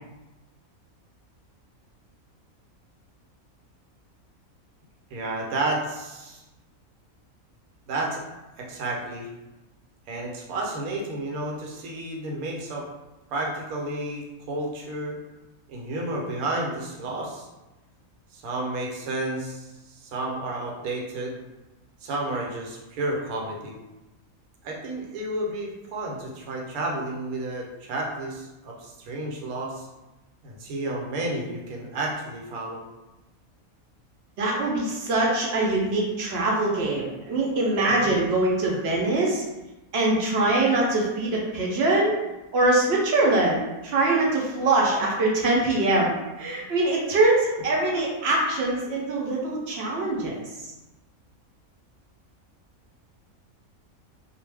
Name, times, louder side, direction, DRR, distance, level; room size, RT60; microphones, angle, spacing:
voice 1, 5.1-6.4 7.9-8.2 8.6-9.3 10.1-12.9 13.3-15.2 15.7-17.5 18.3-21.4 22.0-23.7 24.6-29.9 30.4-32.8 37.9-38.3, right 2 dB, 80° right, -1 dB, 1.1 m, -31 dB
voice 2, 34.4-39.4 39.9-42.2 42.5-50.4 50.6-50.7, right 2 dB, 60° right, -3 dB, 0.7 m, -23 dB
2.5 x 2.0 x 3.2 m, 1.0 s
omnidirectional pair, 1.5 m